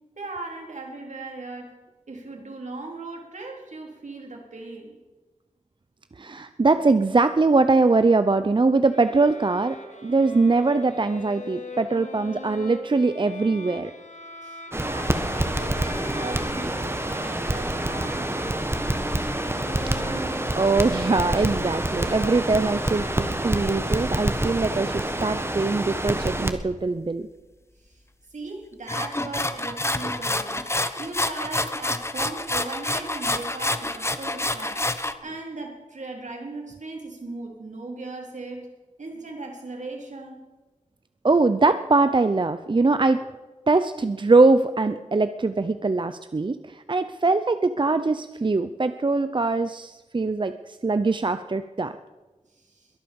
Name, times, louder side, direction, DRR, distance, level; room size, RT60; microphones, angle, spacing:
voice 1, 0.2-1.7 2.1-5.0 14.4-19.0 27.8-28.0 28.3-30.7 31.0-34.9 35.2-38.7 39.0-40.4 52.6-52.9, right 3 dB, 70° right, 1 dB, 3.8 m, -38 dB
voice 2, 6.2-9.8 10.0-13.9 20.0-27.3 41.2-43.3 43.7-52.0, right 3 dB, 40° right, 11 dB, 0.6 m, -22 dB
sound 1, 8.9-23.8, left 1 dB, 65° left, 2.7 m, -41 dB
Crackle, 14.7-26.5, right 1 dB, 20° right, 1.5 m, -27 dB
sound 2, 28.9-35.1, left 1 dB, 20° left, 1.0 m, -28 dB
22.0 x 9.0 x 7.1 m, 1.2 s
wide cardioid pair, 65°, 13 cm